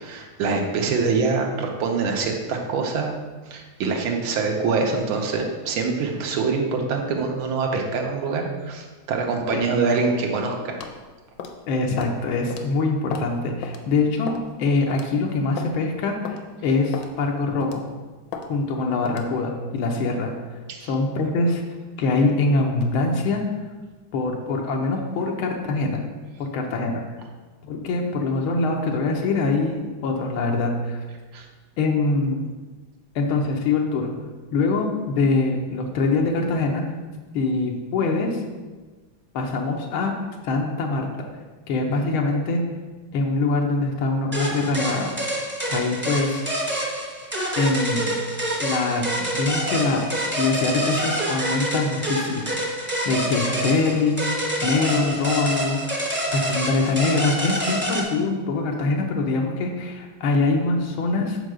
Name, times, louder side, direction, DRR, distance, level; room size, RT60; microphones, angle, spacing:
voice 1, 0.0-3.1 3.5-10.8 20.7-20.9 31.3-31.4, right 4 dB, 90° right, 1 dB, 1.8 m, -25 dB
sound 1, 10.8-11.0 11.4-11.6 12.0-12.2 12.5-12.6 13.1-13.3 13.6-13.8 14.3-14.5 14.9-15.1 15.6-15.7 16.3-16.4 16.9-17.1 17.6-17.9 18.3-18.5 19.1-19.3, left 6 dB, 70° left, 1.2 m, -34 dB
voice 2, 11.7-17.8 18.5-21.6 22.0-23.4 24.1-26.0 26.4-27.0 27.6-31.0 31.8-32.5 33.1-34.1 34.5-36.8 37.3-38.4 39.3-40.1 40.4-41.1 41.7-42.6 43.1-45.1 45.7-46.4 47.6-48.2 48.6-55.8 56.1-61.4, left 3 dB, 90° left, 1 dB, 1.6 m, -24 dB
sound 2, 44.3-58.0, right 1 dB, 15° right, 0.4 m, -27 dB
5.1 x 4.6 x 6.2 m, 1.3 s
omnidirectional pair, 2.2 m